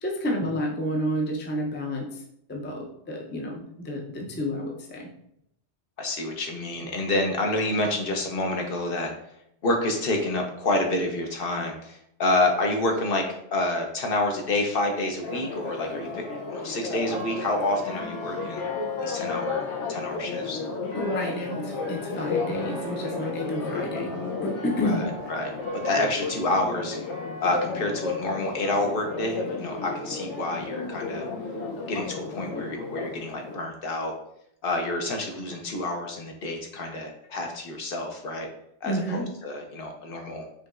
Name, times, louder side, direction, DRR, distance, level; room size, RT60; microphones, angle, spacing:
voice 1, 0.0-2.1 2.5-5.1 20.9-24.1 24.4-25.1 38.8-39.2, equal, 15° left, 0 dB, 0.3 m, -30 dB
voice 2, 6.0-9.1 9.6-13.2 13.5-16.2 16.5-18.6 19.0-20.6 24.8-25.5 25.8-27.0 27.4-31.3 31.9-34.1 34.6-38.5 38.8-40.5, left 2 dB, 60° left, 3 dB, 0.8 m, -28 dB
Church bell, 15.2-33.6, left 3 dB, 85° left, 1.0 m, -33 dB
5.0 x 2.9 x 2.4 m, 0.75 s
omnidirectional pair, 1.2 m